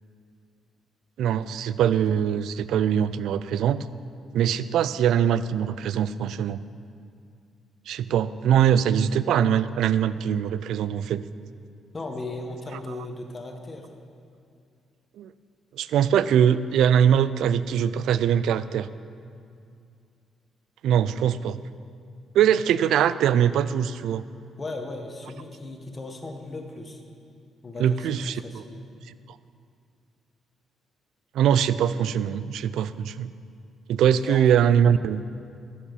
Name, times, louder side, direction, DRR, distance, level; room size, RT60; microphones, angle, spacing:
voice 1, 1.2-3.8 4.3-6.6 7.9-11.2 15.2-15.3 15.8-18.9 20.8-21.6 22.3-24.2 27.8-28.6 31.3-33.3 33.9-35.2, right 9 dB, 80° right, 15 dB, 0.4 m, -22 dB
voice 2, 11.9-13.9 24.6-27.0 27.6-28.9 34.2-34.6, left 2 dB, 30° left, 3 dB, 1.5 m, -37 dB
12.0 x 7.4 x 7.1 m, 2.4 s
cardioid pair, 90°, 0 cm